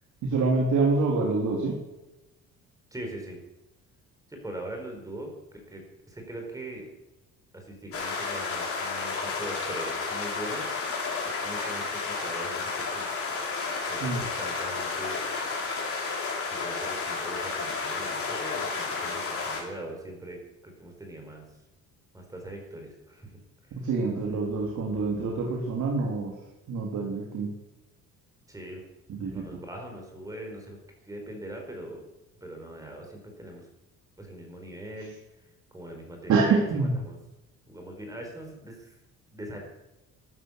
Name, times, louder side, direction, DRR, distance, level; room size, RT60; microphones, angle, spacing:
voice 1, 0.2-1.7 14.0-14.2 23.8-26.3 26.7-27.5 29.1-29.4 36.3-37.0, right 4 dB, 60° right, -1 dB, 3.6 m, -26 dB
voice 2, 2.9-3.4 4.3-6.9 7.5-10.7 11.2-13.1 13.9-15.2 16.5-21.4 22.1-23.3 23.7-23.8 28.5-28.8 29.3-30.8 31.0-32.0 32.4-33.7 34.2-35.1 35.7-37.2 37.7-39.0 39.3-39.6, right 1 dB, 10° right, 2 dB, 4.5 m, -41 dB
sound 1, 7.9-19.6, left 4 dB, 40° left, 5.2 m, -32 dB
13.5 x 11.0 x 8.2 m, 0.98 s
cardioid pair, 135°, 33 cm